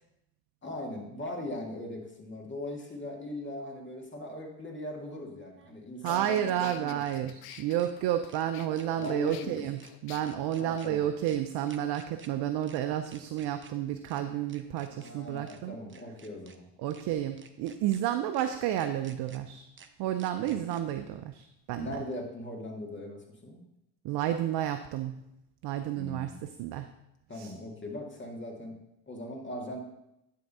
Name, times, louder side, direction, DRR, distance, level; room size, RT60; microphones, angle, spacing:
voice 1, 0.6-7.3 9.0-9.6 10.6-11.0 14.9-16.7 20.4-20.5 21.7-23.7 26.0-26.4 27.3-28.7 29.1-29.8, left 1 dB, 25° left, 0 dB, 2.1 m, -40 dB
sound 1, 2.9-3.0 5.3-7.2 7.5-7.9 8.3-8.4 8.8-9.4 9.8-9.9 10.2-10.9 11.3-11.4 11.7-12.3 12.6-12.8 13.1-13.7 14.0-14.2 14.5-15.1 15.5-15.6 15.9-16.6 16.9-17.0 17.4-18.0 18.3-18.5 18.8-19.4 19.8-19.9 20.2-20.8, right 6 dB, 25° right, 0.8 m, -54 dB
sound 2, 5.6-5.7 6.1-10.2, left 11 dB, 50° left, 0.7 m, -49 dB
voice 2, 6.0-15.8 16.8-19.7 20.0-22.0 24.0-25.2 25.6-26.9 27.3-27.5, right 11 dB, 55° right, 8 dB, 0.6 m, -31 dB
10.5 x 3.8 x 5.5 m, 0.86 s
hypercardioid pair, 80°, 49 cm